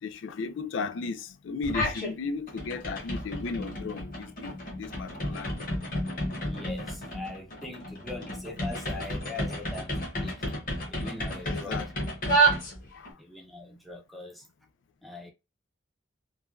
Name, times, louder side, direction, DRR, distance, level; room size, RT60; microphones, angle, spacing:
voice 1, 0.0-5.7 10.9-11.0 11.4-11.9 12.9-13.2, left 4 dB, 75° left, 0.4 m, -35 dB
sound 1, 1.6-2.1 2.5-13.1, right 1 dB, 45° left, 0.9 m, -31 dB
voice 2, 6.4-10.5 10.9-11.8 13.2-14.5 15.0-15.3, left 2 dB, ahead, 0.5 m, -42 dB
3.2 x 2.2 x 2.3 m
head